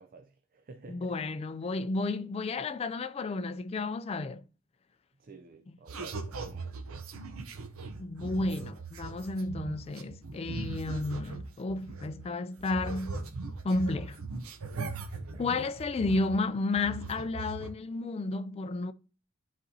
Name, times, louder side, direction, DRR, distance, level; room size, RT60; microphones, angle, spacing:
voice 1, 0.0-1.1 5.2-6.8 15.1-15.4, right 3 dB, 40° right, 0.5 m, -50 dB
voice 2, 0.9-4.4 8.0-13.2 13.6-14.2 15.4-18.9, left 2 dB, 30° left, 0.3 m, -32 dB
sound 1, 5.9-12.3 12.6-16.5 16.7-17.7, right 3 dB, 80° right, 0.8 m, -40 dB
12.5 x 4.2 x 2.8 m
head